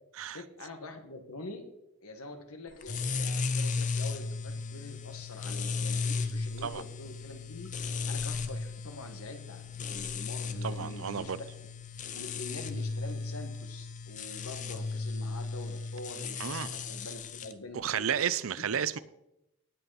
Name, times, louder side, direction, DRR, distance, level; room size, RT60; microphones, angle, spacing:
voice 1, 0.3-1.7 2.0-11.4 12.0-18.1, left 2 dB, 85° left, 1.8 m, -45 dB
sound 1, 2.8-17.5, left 4 dB, 35° left, 0.6 m, -35 dB
voice 2, 10.6-11.4 16.4-16.7 17.7-19.0, right 8 dB, 70° right, 0.5 m, -32 dB
18.5 x 7.9 x 4.2 m
head